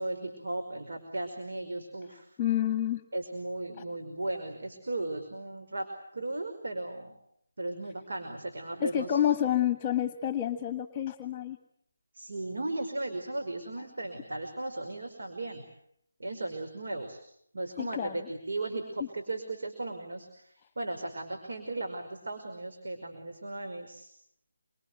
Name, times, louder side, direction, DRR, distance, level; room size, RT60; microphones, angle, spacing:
voice 1, 0.0-2.3 3.1-7.2 7.6-9.2 12.1-15.6 16.2-17.2 17.5-24.1, right 2 dB, 65° right, 4 dB, 5.2 m, -36 dB
voice 2, 2.4-3.0 8.8-11.6 17.8-18.3, left 11 dB, 20° left, 11 dB, 1.5 m, -28 dB
27.5 x 25.0 x 7.9 m, 0.71 s
figure-of-eight pair, 160°, 0 cm